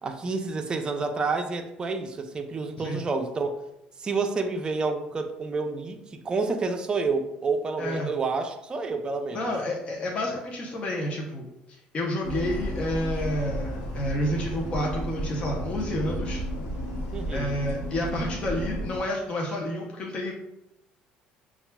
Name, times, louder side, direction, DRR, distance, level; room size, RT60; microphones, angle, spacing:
voice 1, 0.0-3.6 4.0-9.5 17.1-17.6, right 4 dB, 30° right, 6 dB, 0.5 m, -29 dB
voice 2, 7.8-8.1 9.3-11.5 11.9-16.4 17.3-20.3, left 1 dB, 35° left, -2 dB, 0.7 m, -30 dB
sound 1, 12.2-19.0, equal, 90° left, 0.9 m, -32 dB
6.8 x 2.4 x 2.2 m, 0.85 s
cardioid pair, 115°, 3 cm